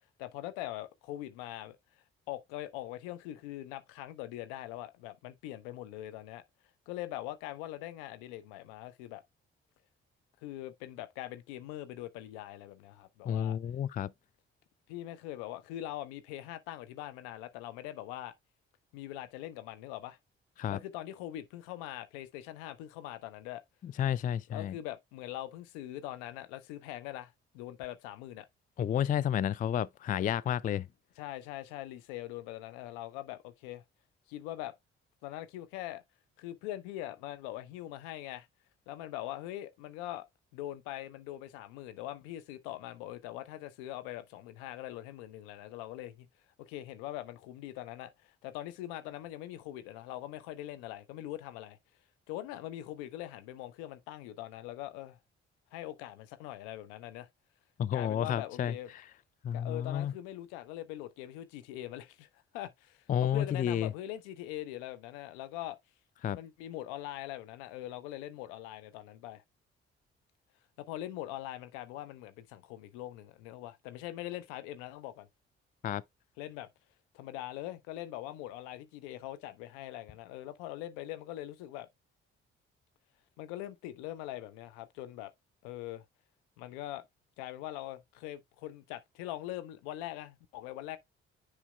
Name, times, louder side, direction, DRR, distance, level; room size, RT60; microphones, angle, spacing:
voice 1, 0.2-1.8 2.3-6.4 6.9-9.2 10.4-13.6 14.9-18.3 18.9-20.2 20.7-23.6 24.5-28.5 31.2-33.8 34.3-34.7 35.2-36.0 36.4-38.5 38.9-40.3 40.5-46.3 46.6-51.8 52.3-55.2 55.7-57.3 57.9-58.9 59.5-62.3 62.5-65.8 66.3-69.4 70.8-75.3 76.4-76.7 77.1-81.9 83.4-85.3 85.6-86.0 86.6-87.0 87.4-91.0, left 14 dB, 75° left, 0.8 m, -42 dB
voice 2, 13.3-14.1 20.6-20.8 23.8-24.7 28.8-30.9 57.8-58.7 59.4-60.1 63.1-63.9 66.2-66.4 75.8-76.0, left 9 dB, 25° left, 0.4 m, -31 dB
9.7 x 4.8 x 2.3 m
figure-of-eight pair, 40°, 32 cm